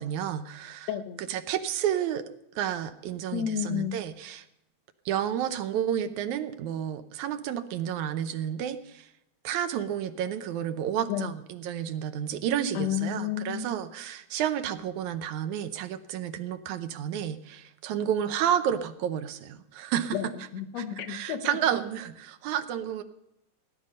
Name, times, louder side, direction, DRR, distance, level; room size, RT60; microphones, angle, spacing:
voice 1, 0.0-0.9 1.3-4.5 5.1-9.1 9.4-20.2 20.8-23.0, right 10 dB, 85° right, 10 dB, 2.3 m, -31 dB
voice 2, 0.9-1.2 3.3-4.0 11.1-11.3 12.8-13.8 20.1-21.6, left 9 dB, 70° left, 10 dB, 1.9 m, -31 dB
18.5 x 10.5 x 5.5 m, 0.84 s
omnidirectional pair, 3.3 m